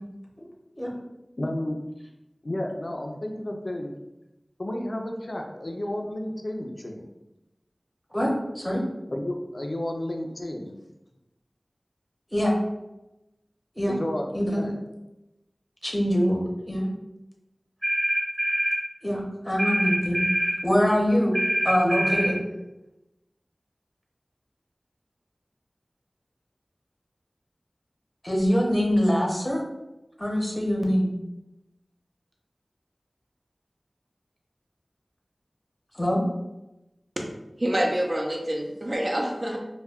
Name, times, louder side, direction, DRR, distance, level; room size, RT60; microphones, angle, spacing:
voice 1, 1.4-1.8 2.4-3.9 4.6-7.1 9.1-10.8 13.9-14.8, left 1 dB, 60° left, 2 dB, 0.4 m, -32 dB
voice 2, 14.3-14.7 15.8-16.4 16.7-16.9 19.0-20.3 20.6-21.3 21.6-22.4 28.2-29.6 30.2-31.1 35.9-36.2, equal, 10° left, -2 dB, 0.7 m, -23 dB
sound 1, 17.8-18.8 19.6-20.6 21.3-22.3, right 1 dB, 20° right, 0.8 m, -25 dB
voice 3, 37.6-39.6, right 1 dB, 50° right, 1 dB, 0.5 m, -27 dB
2.2 x 2.2 x 3.4 m, 0.97 s
wide cardioid pair, 40°, 0 cm